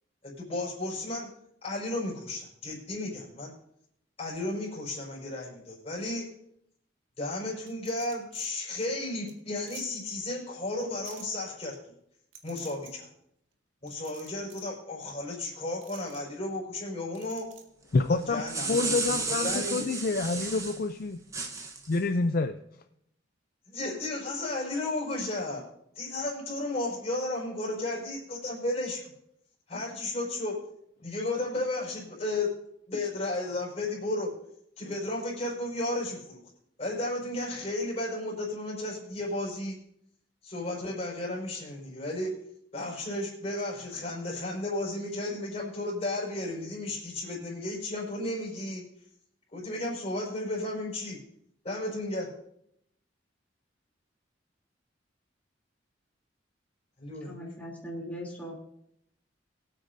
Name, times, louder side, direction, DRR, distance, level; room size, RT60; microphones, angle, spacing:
voice 1, 0.2-1.3 1.6-3.5 4.2-6.3 7.2-11.7 12.4-13.1 13.8-17.5 18.1-19.8 23.7-25.6 25.9-29.0 29.7-30.7 31.0-32.5 32.9-34.3 34.8-36.4 36.8-39.8 40.4-42.4 42.7-48.8 49.5-51.2 51.6-52.3 57.0-57.3, left 2 dB, 35° left, -2 dB, 5.1 m, -33 dB
sound 1, 7.7-8.5 8.9-9.0 9.3-9.4 9.7-9.8 11.0-11.2 12.3-12.9 13.9-14.7 15.8-16.2 17.1-17.6, right 7 dB, 80° right, 1.9 m, -50 dB
voice 2, 17.9-18.4 18.7-21.2 21.9-22.6, left 3 dB, 50° left, 8 dB, 0.5 m, -27 dB
sound 2, 18.2-20.8 21.3-22.0, right 4 dB, 15° right, 1.0 m, -33 dB
voice 3, 57.2-58.5, equal, 10° left, -5 dB, 3.1 m, -39 dB
23.0 x 8.8 x 2.7 m, 0.73 s
head